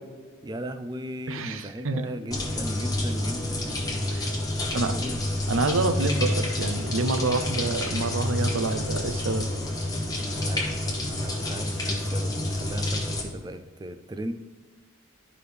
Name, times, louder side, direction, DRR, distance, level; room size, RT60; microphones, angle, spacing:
voice 1, 0.4-3.8 4.5-5.3 10.2-10.7 11.1-14.3, right 1 dB, 20° right, 9 dB, 0.3 m, -37 dB
voice 2, 1.3-2.1 4.1-4.3 4.7-5.0 5.5-9.5, right 3 dB, 70° right, 8 dB, 0.6 m, -27 dB
sound 1, 2.3-13.2, left 1 dB, 15° left, 1.0 m, -28 dB
11.0 x 4.9 x 3.3 m, 1.5 s
head